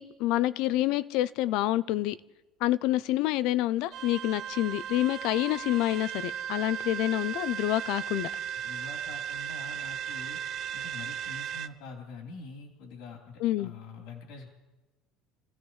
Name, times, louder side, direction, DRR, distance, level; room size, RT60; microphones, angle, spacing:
voice 1, 0.0-2.2 2.6-8.3 13.4-13.7, left 15 dB, 55° left, 0.5 m, -27 dB
sound 1, 3.9-11.7, right 9 dB, 40° right, 0.5 m, -36 dB
voice 2, 8.6-10.4 10.7-14.5, left 4 dB, 70° left, 3.0 m, -45 dB
28.0 x 16.0 x 3.2 m
cardioid pair, 175°, 0 cm